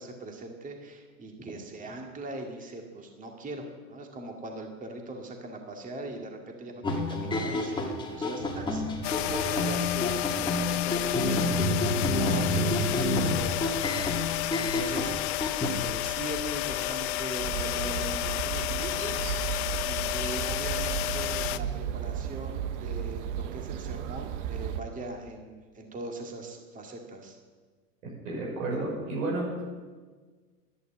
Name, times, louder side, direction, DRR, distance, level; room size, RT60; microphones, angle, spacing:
voice 1, 0.0-15.4 15.7-19.2 19.8-27.4, right 2 dB, 15° right, 2 dB, 2.1 m, -40 dB
sound 1, 6.8-15.7, left 2 dB, 10° left, 2.0 m, -29 dB
sound 2, 9.0-21.6, left 16 dB, 45° left, 0.7 m, -31 dB
sound 3, 17.4-24.8, right 9 dB, 50° right, 1.1 m, -34 dB
voice 2, 28.0-29.5, right 2 dB, 65° right, -3 dB, 6.1 m, -31 dB
11.5 x 10.5 x 8.8 m, 1.4 s
hypercardioid pair, 115°, 46 cm